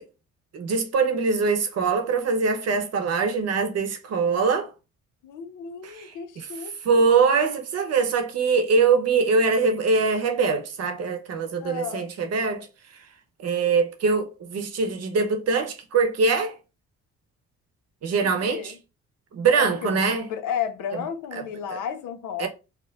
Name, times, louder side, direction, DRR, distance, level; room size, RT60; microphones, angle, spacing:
voice 1, 0.5-4.7 5.8-6.5 6.8-12.7 13.4-16.5 18.0-18.7 19.3-20.3 21.7-21.8 22.4-22.5, right 4 dB, 55° right, 0.8 m, -23 dB
voice 2, 5.2-7.2 11.6-12.1 18.2-18.8 19.5-22.5, left 8 dB, 85° left, 0.6 m, -33 dB
4.4 x 2.1 x 2.3 m
cardioid pair, 90°, 30 cm